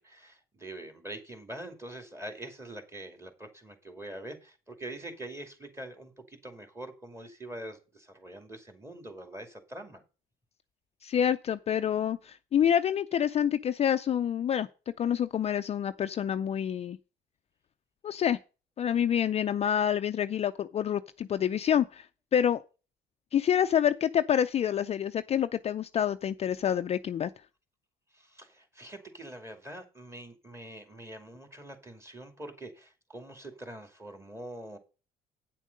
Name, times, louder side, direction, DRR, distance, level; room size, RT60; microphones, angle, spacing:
voice 1, 0.0-10.0 28.1-34.8, right 1 dB, 15° right, 2.4 m, -44 dB
voice 2, 11.0-14.7 15.0-17.0 18.0-18.4 18.8-22.1 22.3-22.6 23.3-27.3, left 9 dB, 40° left, 0.4 m, -27 dB
9.1 x 7.3 x 5.3 m
cardioid pair, 110°, 17 cm